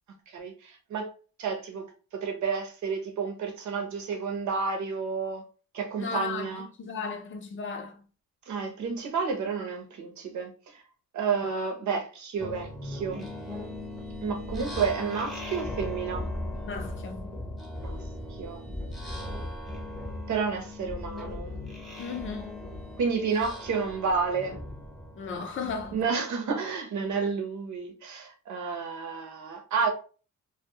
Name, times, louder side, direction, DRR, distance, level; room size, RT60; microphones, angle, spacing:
voice 1, 0.3-1.1 1.4-1.9 2.1-5.4 5.7-6.7 8.5-10.5 11.1-13.3 14.2-16.3 17.8-18.0 18.3-18.6 20.3-21.5 23.0-24.6 25.9-29.9, right 5 dB, 70° right, 0.8 m, -30 dB
voice 2, 6.0-6.5 6.8-8.0 16.7-17.3 22.0-22.5 25.2-26.0, left 5 dB, 40° left, 0.6 m, -35 dB
sound 1, 12.4-26.0, left 1 dB, ahead, 0.8 m, -38 dB
2.3 x 2.3 x 2.8 m
cardioid pair, 90°, 30 cm